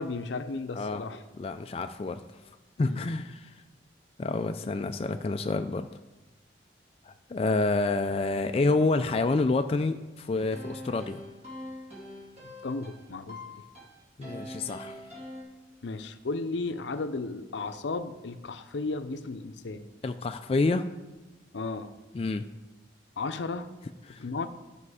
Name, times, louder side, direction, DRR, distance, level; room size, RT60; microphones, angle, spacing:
voice 1, 0.0-1.2 2.8-3.1 12.4-13.6 15.8-19.9 21.5-21.9 23.2-23.7 24.2-24.5, left 3 dB, 80° left, 11 dB, 0.6 m, -34 dB
voice 2, 0.7-1.0 1.4-2.2 2.8-3.5 4.2-5.9 7.0-11.2 14.2-15.0 20.0-20.8 22.1-22.5 24.1-24.2, left 3 dB, 30° left, 7 dB, 0.3 m, -28 dB
sound 1, 10.3-15.4, left 1 dB, 35° right, 2.1 m, -43 dB
12.0 x 5.3 x 4.8 m, 1.1 s
head